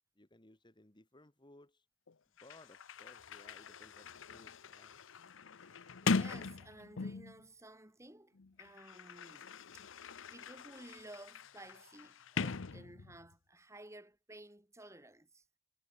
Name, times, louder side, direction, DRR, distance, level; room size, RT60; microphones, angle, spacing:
voice 1, 0.2-1.9 2.4-5.0, left 1 dB, 20° left, 1.8 m, -61 dB
Sliding door, 2.1-2.2 2.4-7.4 8.4-13.3, left 4 dB, 65° left, 0.7 m, -41 dB
voice 2, 5.6-10.0 10.3-15.4, right 1 dB, 15° right, 2.9 m, -55 dB
head